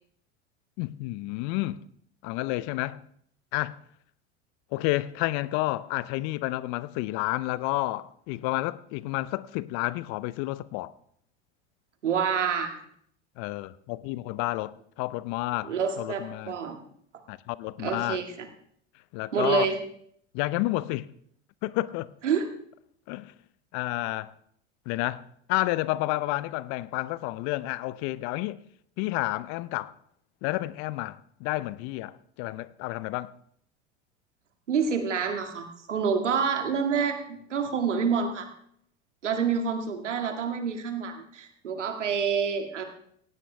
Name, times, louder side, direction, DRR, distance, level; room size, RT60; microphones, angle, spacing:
voice 1, 0.8-1.8 2.2-3.0 3.5-3.8 4.7-10.9 13.4-16.5 17.3-18.2 19.1-19.7 20.3-21.1 21.6-22.1 23.1-23.3 23.7-24.3 24.9-25.2 25.5-28.6 29.0-29.9 30.4-33.3, left 18 dB, 55° left, 0.7 m, -30 dB
voice 2, 12.0-12.7 15.6-16.8 17.8-18.5 19.3-19.8 22.2-22.5 34.7-38.5 39.2-42.8, right 6 dB, 85° right, 2.2 m, -27 dB
18.0 x 16.0 x 3.4 m
hypercardioid pair, 85°, 35 cm